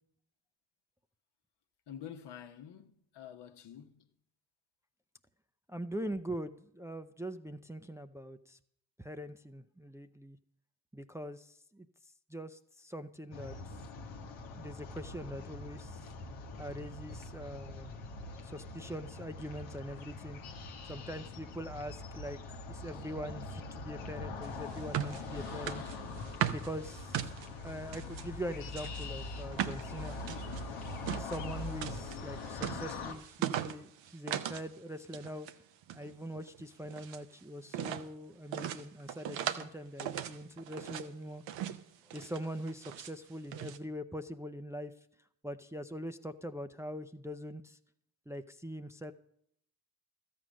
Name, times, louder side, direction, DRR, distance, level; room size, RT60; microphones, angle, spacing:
voice 1, 1.9-4.1, left 9 dB, 65° left, 1.1 m, -48 dB
voice 2, 5.7-8.6 9.0-10.4 10.9-11.9 12.3-13.6 14.6-16.1 16.6-17.9 18.4-20.4 20.9-26.0 26.5-27.2 27.6-30.2 31.1-35.5 35.9-41.4 42.1-44.9 45.4-47.8 48.3-49.1, equal, 5° right, 0.5 m, -43 dB
sound 1, 13.3-33.1, left 3 dB, 90° left, 1.0 m, -43 dB
sound 2, 24.4-28.3 28.7-34.7 35.0-35.5 35.8-37.3 37.7-38.1 38.5-39.7 40.0-41.1 41.5-41.8 42.1-43.1 43.5-43.8, right 11 dB, 75° right, 0.8 m, -39 dB
13.0 x 7.7 x 6.2 m
supercardioid pair, 50°, 44 cm